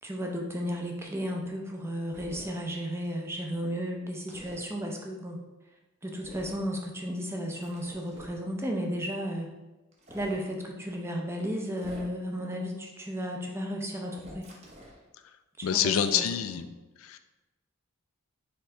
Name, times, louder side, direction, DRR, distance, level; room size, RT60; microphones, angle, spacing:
voice 1, 0.0-5.4 6.0-9.5 10.1-14.5 15.6-16.6, equal, 10° right, 1 dB, 0.5 m, -34 dB
sound 1, 2.1-2.5 4.3-4.6 6.2-6.7 7.6-8.4 9.9-10.4 11.7-12.3 14.2-15.0, equal, 30° right, 0.8 m, -47 dB
voice 2, 15.6-16.7 17.0-17.2, left 8 dB, 70° left, 9 dB, 0.3 m, -26 dB
4.5 x 3.2 x 3.6 m, 1.1 s
head